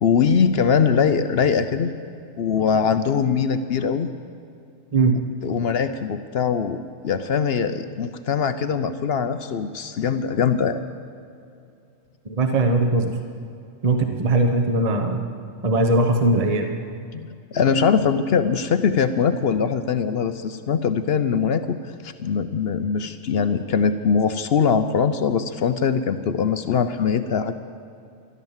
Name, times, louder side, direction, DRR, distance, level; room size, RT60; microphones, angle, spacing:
voice 1, 0.0-1.9 2.4-4.1 5.4-10.8 17.1-21.8 22.0-27.5, left 6 dB, 60° left, 10 dB, 0.8 m, -22 dB
voice 2, 12.3-13.2 13.8-15.2 15.6-16.7, right 2 dB, 30° right, 5 dB, 1.0 m, -20 dB
14.0 x 12.0 x 7.3 m, 2.5 s
omnidirectional pair, 1.4 m